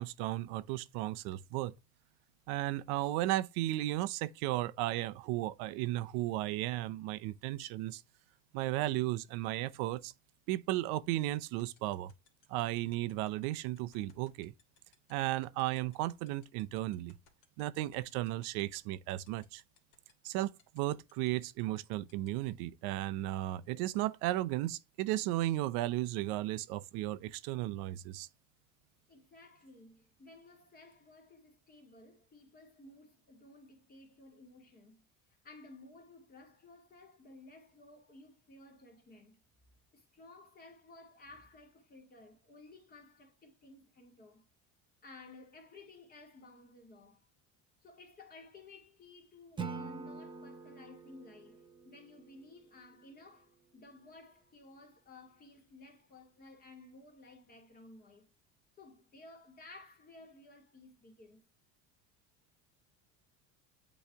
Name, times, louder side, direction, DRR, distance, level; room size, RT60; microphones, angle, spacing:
voice 1, 0.0-1.7 2.5-8.0 8.5-10.1 10.5-12.1 12.5-14.5 15.1-17.2 17.6-19.6 20.2-28.3, right 16 dB, 80° right, 0.7 m, -35 dB
sound 1, 11.4-22.3, left 7 dB, 60° left, 2.0 m, -64 dB
voice 2, 29.1-35.0 35.4-39.4 39.9-44.5 45.0-47.2 47.8-58.3 58.8-61.4, left 2 dB, 25° left, 2.1 m, -56 dB
Acoustic guitar / Strum, 49.6-52.7, right 4 dB, 15° right, 0.6 m, -45 dB
8.3 x 3.2 x 3.5 m
cardioid pair, 145°, 35 cm